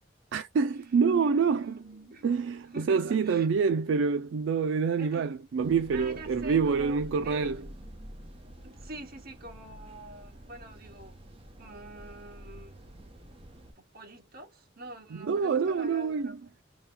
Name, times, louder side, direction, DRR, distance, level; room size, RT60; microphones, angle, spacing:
voice 1, 0.3-1.7 2.2-7.7 15.1-16.4, right 5 dB, 75° right, 0.4 m, -26 dB
voice 2, 1.2-2.2 2.7-3.5 5.0-5.4 5.9-7.5 8.6-11.2 11.6-12.7 13.8-16.6, right 1 dB, 55° right, 1.8 m, -46 dB
sound 1, 5.6-13.7, equal, 30° right, 1.0 m, -48 dB
3.9 x 2.3 x 3.9 m
head